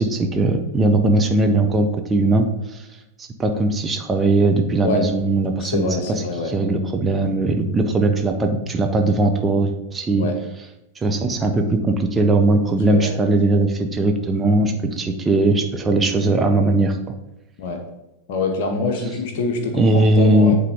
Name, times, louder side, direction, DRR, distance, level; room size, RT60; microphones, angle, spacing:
voice 1, 0.0-2.9 3.2-10.3 11.0-17.0 19.7-20.6, right 2 dB, 15° right, 4 dB, 0.7 m, -19 dB
voice 2, 5.6-6.5 10.2-10.3 12.7-13.2 17.6-17.8 18.3-20.6, left 3 dB, 50° left, 4 dB, 1.1 m, -25 dB
9.2 x 3.8 x 3.6 m, 0.93 s
figure-of-eight pair, 90°, 0 cm